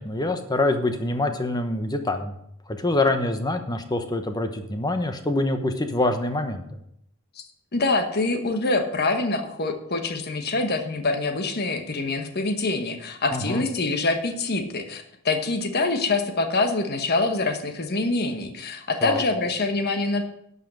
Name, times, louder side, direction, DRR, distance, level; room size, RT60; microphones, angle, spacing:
voice 1, 0.0-2.4 2.7-6.6 13.3-13.6 19.0-19.2, left 2 dB, 20° left, 7 dB, 0.9 m, -25 dB
voice 2, 7.7-20.3, left 3 dB, 50° left, 6 dB, 1.2 m, -25 dB
12.0 x 5.6 x 7.6 m, 0.75 s
head